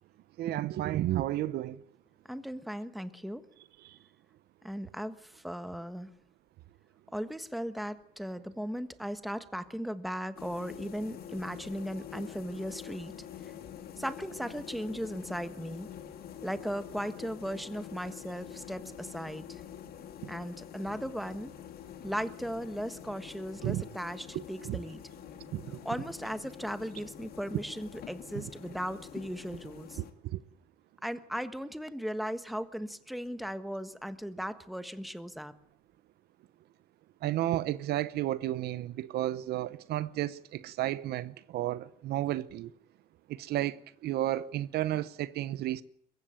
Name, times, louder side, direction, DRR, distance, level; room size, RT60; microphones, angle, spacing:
voice 1, 0.4-1.8 23.6-23.8 24.3-24.8 25.5-25.8 28.3-28.5 30.0-30.4 37.2-42.7 43.4-45.8, right 14 dB, 70° right, 0.8 m, -32 dB
voice 2, 2.3-3.5 4.6-6.1 7.1-13.1 14.0-15.9 16.4-19.6 20.3-21.5 22.0-25.0 25.8-30.0 31.0-35.5, equal, ahead, 1.4 m, -37 dB
sound 1, 10.4-30.1, left 9 dB, 65° left, 2.2 m, -46 dB
22.5 x 15.0 x 8.9 m
cardioid pair, 110°, 17 cm